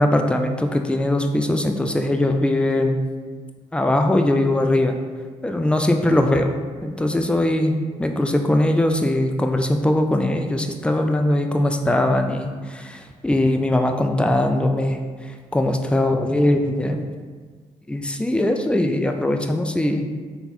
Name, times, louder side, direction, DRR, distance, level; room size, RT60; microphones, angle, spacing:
voice 1, 0.0-3.0 3.7-5.0 5.4-6.5 6.8-15.0 15.5-17.1 17.9-20.1, left 1 dB, 5° left, 5 dB, 0.4 m, -20 dB
3.4 x 2.2 x 4.1 m, 1.5 s
hypercardioid pair, 40°, 18 cm